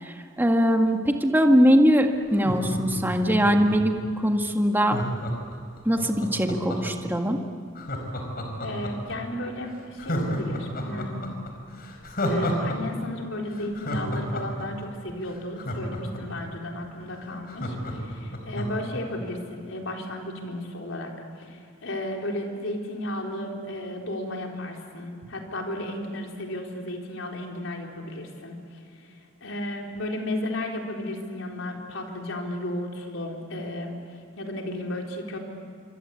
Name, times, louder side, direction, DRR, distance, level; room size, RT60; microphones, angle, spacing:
voice 1, 0.0-5.0 5.8-7.4, equal, 10° right, 3 dB, 1.7 m, -21 dB
Laughter, 2.3-4.0 4.8-7.0 7.8-9.2 9.5-9.6 10.0-12.8 13.0-13.1 13.5-16.4 16.8-16.9 17.2-18.9 19.3-19.4, equal, 50° left, 4.7 m, -31 dB
voice 2, 8.6-11.2 12.3-21.1 21.4-35.4, left 1 dB, 90° left, 1 dB, 4.2 m, -34 dB
27.0 x 25.0 x 8.3 m, 2.3 s
head